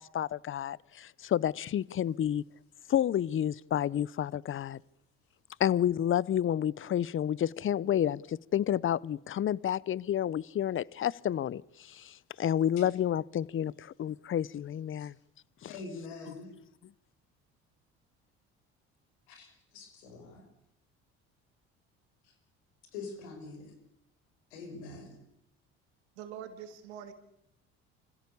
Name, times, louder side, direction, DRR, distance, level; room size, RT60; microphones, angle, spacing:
voice 1, 0.0-2.4 2.9-4.8 5.6-15.1 15.6-15.7 16.3-16.4, left 10 dB, 40° left, 0.7 m, -30 dB
voice 2, 15.7-16.5 19.3-20.4 22.2-22.3 22.9-23.7 24.5-25.2, left 3 dB, 85° left, 6.1 m, -44 dB
voice 3, 26.2-27.1, right 9 dB, 85° right, 2.9 m, -44 dB
26.0 x 16.0 x 7.0 m
hypercardioid pair, 65°, 32 cm